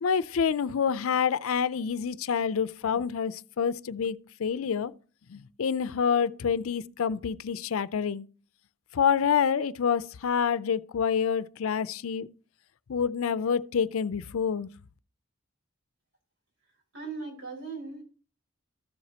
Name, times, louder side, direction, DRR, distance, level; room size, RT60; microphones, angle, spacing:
voice 1, 0.0-4.9 5.3-8.3 8.9-12.3 12.9-14.7, left 7 dB, 85° left, 0.4 m, -27 dB
voice 2, 16.9-18.0, right 4 dB, 75° right, 4.9 m, -38 dB
13.5 x 7.3 x 2.8 m
head